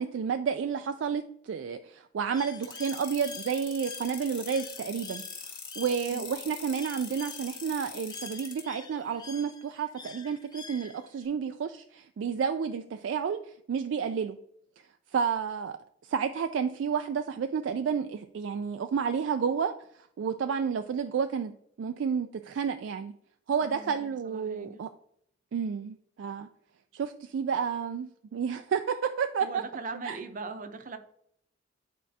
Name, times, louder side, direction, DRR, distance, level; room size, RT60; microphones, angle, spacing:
voice 1, 0.0-5.2 5.8-13.4 13.7-14.4 15.1-15.8 16.0-19.7 20.2-21.5 21.8-23.1 23.5-24.9 25.5-26.5 26.9-29.6 30.0-30.2, right 6 dB, 75° right, 8 dB, 0.3 m, -30 dB
Bird, 2.3-11.3, left 4 dB, 20° left, 0.5 m, -47 dB
sound 1, 2.6-8.6, left 6 dB, 50° left, 1.7 m, -42 dB
voice 2, 23.6-24.8 29.4-31.0, right 3 dB, 45° right, 8 dB, 0.6 m, -40 dB
8.5 x 4.6 x 2.7 m, 0.70 s
head